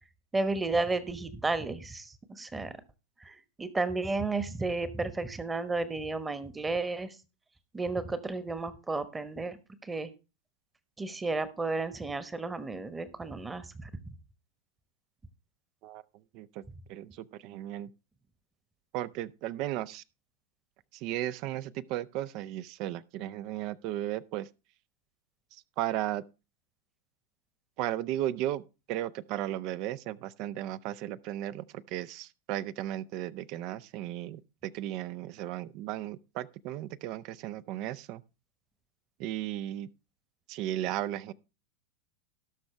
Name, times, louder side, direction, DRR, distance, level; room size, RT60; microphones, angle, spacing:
voice 1, 0.3-2.7 3.2-7.2 7.7-10.1 11.0-13.9, right 3 dB, 10° right, 1.1 m, -33 dB
voice 2, 16.9-17.9 18.9-20.0 20.9-24.5 25.5-26.2 27.8-28.6 28.9-38.2 39.2-39.9 40.5-41.3, right 13 dB, 40° right, 0.5 m, -35 dB
17.5 x 6.1 x 3.2 m
figure-of-eight pair, 90°, 0 cm